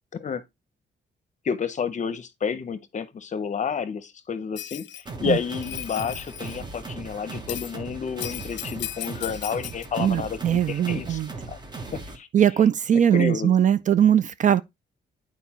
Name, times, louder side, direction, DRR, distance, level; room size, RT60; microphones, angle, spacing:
voice 1, 0.1-0.4 1.4-4.9 5.2-11.2 11.5-11.6 12.1-12.3 13.1-13.5, left 6 dB, 40° left, 0.7 m, -30 dB
Bell, 4.6-5.0 5.5-6.6 7.5-7.7 8.2-9.9, left 13 dB, 80° left, 0.5 m, -36 dB
sound 1, 5.1-12.2, right 3 dB, 25° right, 1.0 m, -38 dB
voice 2, 10.0-11.3 12.3-14.6, right 9 dB, 45° right, 0.4 m, -20 dB
9.3 x 4.5 x 2.9 m
cardioid pair, 140°, 19 cm